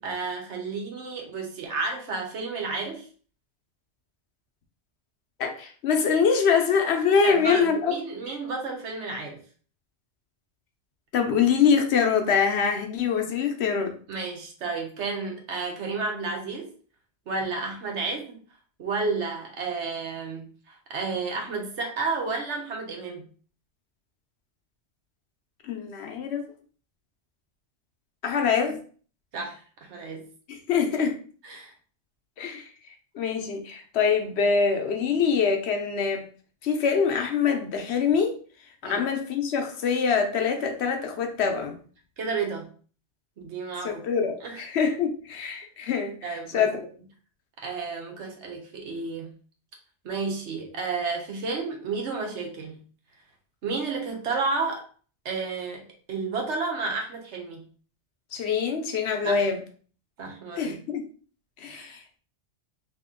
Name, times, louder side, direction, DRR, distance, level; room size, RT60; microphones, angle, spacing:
voice 1, 0.0-3.1 7.2-9.4 14.1-16.7 17.3-18.4 18.8-23.3 29.3-30.3 31.4-31.7 38.8-39.0 42.2-42.7 43.4-44.0 44.4-44.6 46.2-46.7 47.6-49.3 50.0-52.8 53.6-54.8 55.2-57.6 59.2-59.4 60.2-60.8 61.7-62.0, right 4 dB, 80° right, 1 dB, 1.2 m, -31 dB
voice 2, 5.4-7.9 8.3-8.4 11.1-13.9 25.6-26.5 28.2-28.8 30.5-31.2 32.4-32.7 33.1-36.3 36.6-38.4 38.8-41.8 43.8-46.9 58.3-59.6 60.6-61.0 61.6-62.2, left 6 dB, 70° left, 4 dB, 0.9 m, -24 dB
2.8 x 2.8 x 3.6 m, 0.42 s
omnidirectional pair, 1.2 m